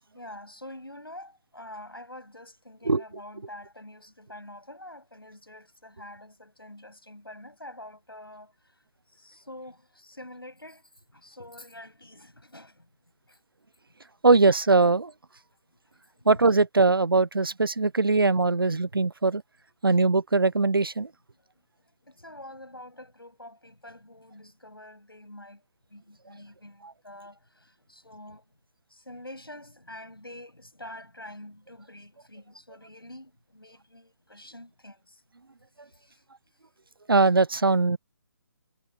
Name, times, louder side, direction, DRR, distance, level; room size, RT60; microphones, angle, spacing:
voice 1, 0.1-8.5 9.1-12.9 13.3-13.4 16.1-16.3 22.0-25.6 25.9-28.5 28.9-35.2 35.9-36.2, left 1 dB, 85° left, 7.7 m, -46 dB
voice 2, 14.2-15.1 16.3-19.4 19.8-21.1 26.8-26.9 37.1-38.0, right 3 dB, 75° right, 0.7 m, -21 dB
figure-of-eight pair, 145°, 12 cm